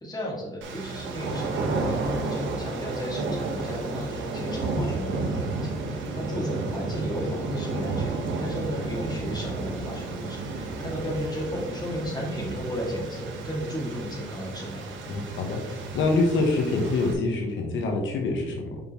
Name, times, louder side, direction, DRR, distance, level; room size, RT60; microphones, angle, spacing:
voice 1, 0.0-8.1 8.4-14.9, equal, 20° left, -1 dB, 2.3 m, -34 dB
sound 1, 0.6-17.1, right 3 dB, 80° right, 1.4 m, -32 dB
voice 2, 15.1-18.8, left 3 dB, 75° left, 2 dB, 1.2 m, -26 dB
7.5 x 5.7 x 3.1 m, 1.1 s
cardioid pair, 90°, 20 cm